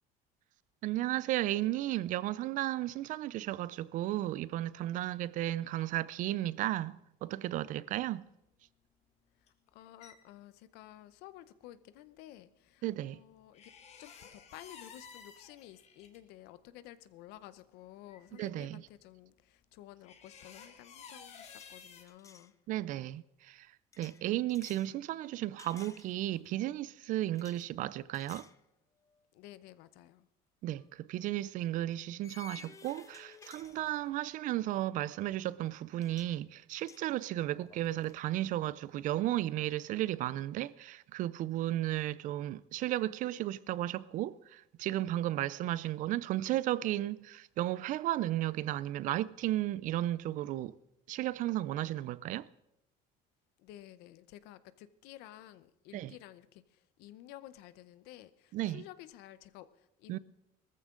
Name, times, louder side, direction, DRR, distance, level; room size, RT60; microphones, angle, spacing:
voice 1, 0.8-8.3 12.8-13.2 18.4-18.8 22.7-23.7 24.0-28.5 30.6-50.8 51.1-52.5 55.9-56.1 58.5-58.8 60.1-60.2, right 14 dB, 55° right, 0.4 m, -34 dB
sound 1, 9.5-10.1 13.5-16.2 17.3-17.4 17.6-17.7 18.1-18.5 20.0-22.0, left 6 dB, 40° left, 1.5 m, -53 dB
voice 2, 9.7-13.7 14.0-22.5 29.3-30.3 53.6-60.2, left 13 dB, 80° left, 0.8 m, -53 dB
sound 2, 20.4-20.6 20.9-22.5 23.9-24.9 25.6-26.5 27.3-27.7 28.1-28.6 29.1-29.2 30.7-30.9 32.2-34.3 35.7-35.8 36.0-36.4 36.7-38.2, left 6 dB, 20° left, 0.5 m, -56 dB
19.0 x 14.0 x 3.8 m
cardioid pair, 150°, 16 cm